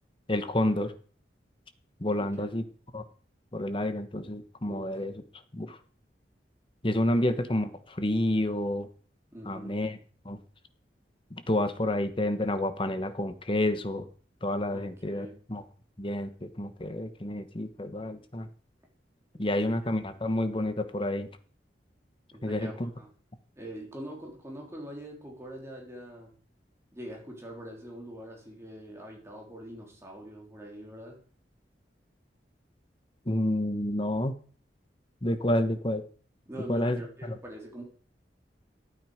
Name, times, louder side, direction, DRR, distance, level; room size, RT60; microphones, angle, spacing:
voice 1, 0.3-0.9 2.0-2.6 2.9-3.0 3.5-5.1 5.5-5.8 6.8-8.9 9.5-10.0 10.2-10.4 11.3-14.1 14.4-15.6 16.0-18.5 19.4-21.3 22.4-22.9 33.3-34.3 35.2-36.0 36.7-37.0 37.3-37.4, left 1 dB, 30° left, 9 dB, 1.2 m, -29 dB
voice 2, 2.2-2.6 4.7-5.0 7.1-7.2 9.3-9.8 14.7-15.4 19.4-19.7 22.3-23.1 23.6-26.3 26.9-31.2 36.5-37.8, equal, 15° right, -1 dB, 3.7 m, -43 dB
12.5 x 8.9 x 5.1 m, 0.42 s
head